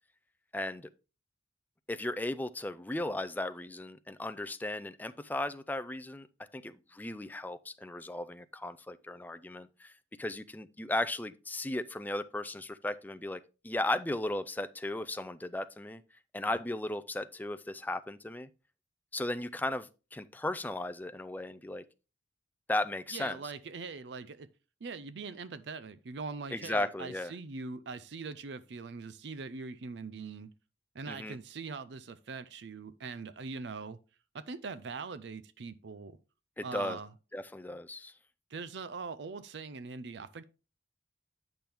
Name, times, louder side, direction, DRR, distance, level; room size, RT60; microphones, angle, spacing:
voice 1, 0.5-0.9 1.9-6.3 6.5-9.9 10.2-16.0 16.3-18.5 19.1-21.8 22.7-23.4 26.5-27.3 31.1-31.4 36.6-37.0 37.3-38.1, left 1 dB, 10° left, 0.4 m, -36 dB
voice 2, 23.1-24.5 24.8-30.5 30.9-34.0 34.3-36.2 36.6-37.1 38.5-40.4, right 4 dB, 65° right, 0.5 m, -42 dB
8.7 x 6.0 x 3.4 m
head